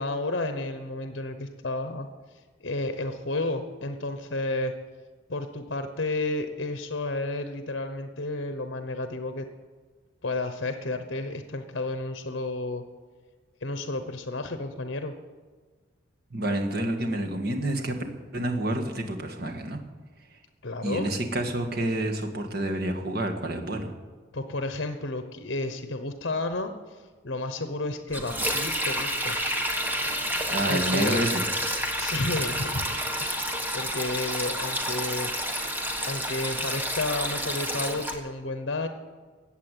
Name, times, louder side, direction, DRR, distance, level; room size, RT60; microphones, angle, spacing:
voice 1, 0.0-2.1 2.6-4.7 5.3-9.5 10.2-12.8 13.6-15.1 20.6-21.1 24.3-29.4 30.7-31.2 32.0-32.9 33.2-35.3 36.0-38.9, left 2 dB, 60° left, 8 dB, 1.0 m, -31 dB
voice 2, 16.3-18.0 18.3-19.8 20.8-23.9 30.5-31.5, right 1 dB, 55° right, 3 dB, 1.8 m, -28 dB
Sink (filling or washing), 28.1-38.2, equal, 10° right, 1.3 m, -29 dB
15.0 x 8.5 x 9.1 m, 1.4 s
head